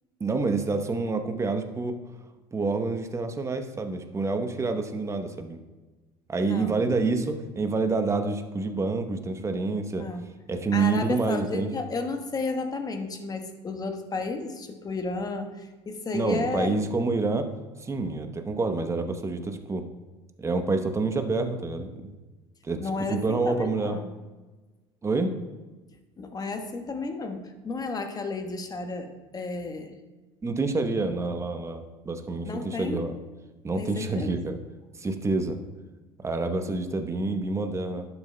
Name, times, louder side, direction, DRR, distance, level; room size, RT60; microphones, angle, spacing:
voice 1, 0.2-2.0 2.5-5.6 6.3-10.1 10.5-11.7 16.1-17.5 17.8-19.9 20.4-22.1 22.6-24.0 25.0-25.3 30.4-33.2 33.6-34.6 34.9-35.6 36.2-38.1, right 3 dB, 20° right, 7 dB, 0.9 m, -27 dB
voice 2, 6.4-6.8 10.0-10.3 10.7-16.7 22.8-24.1 26.2-30.0 32.4-33.1 33.8-34.4, left 3 dB, 25° left, 5 dB, 1.2 m, -33 dB
11.5 x 7.0 x 2.2 m, 1.2 s
hypercardioid pair, 80°, 14 cm